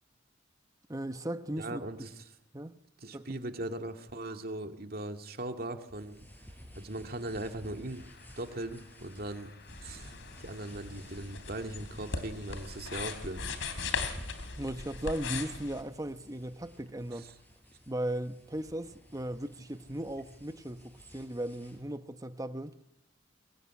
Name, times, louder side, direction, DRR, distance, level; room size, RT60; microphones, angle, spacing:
voice 1, 0.9-1.8 2.5-2.7 3.1-3.3 14.6-17.3 17.9-22.7, right 1 dB, 20° right, 1.1 m, -37 dB
voice 2, 1.6-2.2 3.0-6.2 6.7-8.0 8.4-9.5 9.8-10.1 10.4-13.4 13.7-14.0, right 1 dB, 50° right, 2.2 m, -39 dB
sound 1, 5.9-21.8, equal, 10° left, 5.1 m, -53 dB
Truck, 7.3-14.0, left 2 dB, 60° left, 3.6 m, -56 dB
sound 2, 9.7-15.8, left 4 dB, 90° left, 3.2 m, -39 dB
23.0 x 22.5 x 9.8 m
head